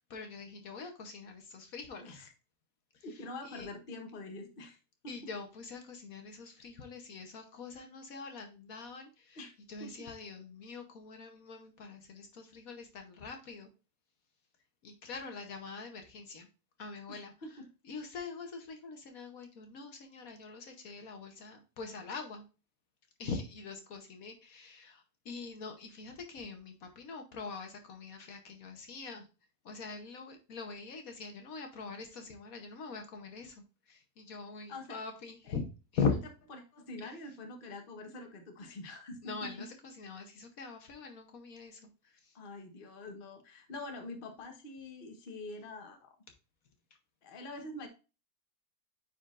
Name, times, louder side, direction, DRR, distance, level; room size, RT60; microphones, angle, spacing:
voice 1, 0.0-2.3 3.4-3.7 5.1-9.4 9.7-13.7 14.8-16.5 16.8-17.3 17.8-22.4 23.2-29.3 29.6-35.6 35.9-36.1 37.0-37.1 39.2-41.9 42.2-42.3, left 5 dB, 65° left, 5 dB, 1.3 m, -42 dB
voice 2, 2.0-2.3 3.0-4.8 5.0-5.3 9.3-9.5 9.8-9.9 17.1-17.6 34.7-35.0 35.4-35.5 36.5-39.7 42.3-46.1 47.2-47.9, left 2 dB, 40° left, 4 dB, 1.1 m, -45 dB
9.2 x 4.3 x 2.4 m, 0.32 s
omnidirectional pair, 1.7 m